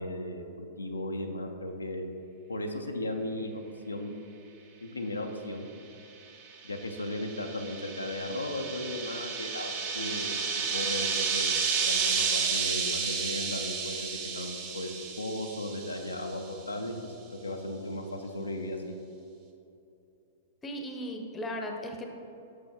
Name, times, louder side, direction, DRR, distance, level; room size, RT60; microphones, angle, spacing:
voice 1, 0.0-2.0 2.5-4.1 4.8-5.7 6.6-10.4 10.7-14.9 15.2-17.1 17.4-18.9, left 1 dB, 80° left, 4 dB, 0.5 m, -36 dB
sound 1, 6.5-16.3, right 6 dB, 40° right, 0.8 m, -31 dB
voice 2, 20.6-22.1, equal, 15° left, 3 dB, 0.7 m, -36 dB
6.2 x 5.9 x 3.6 m, 2.8 s
figure-of-eight pair, 100°, 0 cm